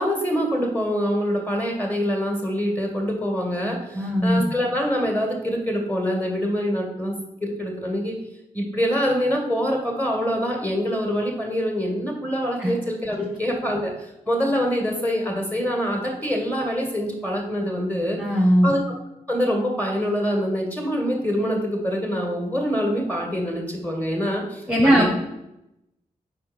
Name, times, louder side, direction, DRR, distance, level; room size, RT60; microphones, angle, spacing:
voice 1, 0.0-8.2 8.5-18.2 18.6-18.8 19.3-25.1, equal, 10° left, 0 dB, 2.2 m, -25 dB
voice 2, 3.9-4.4 12.6-12.7 18.2-18.7 24.7-25.1, equal, 10° right, -2 dB, 1.3 m, -18 dB
4.5 x 4.3 x 5.4 m, 0.88 s
supercardioid pair, 40°, 16 cm